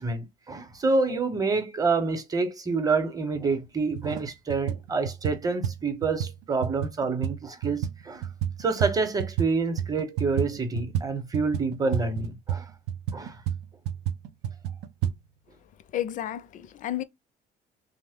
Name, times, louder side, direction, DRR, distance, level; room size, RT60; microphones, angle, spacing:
voice 1, 0.0-8.3 8.6-12.6 13.1-13.4, right 4 dB, 20° right, 0.8 m, -27 dB
sound 1, 3.3-3.4 3.9-4.2 4.5-9.5 9.8-15.1, right 9 dB, 80° right, 0.4 m, -31 dB
voice 2, 15.9-17.0, left 12 dB, 50° left, 0.4 m, -31 dB
3.1 x 2.1 x 3.5 m
cardioid pair, 110°, 17 cm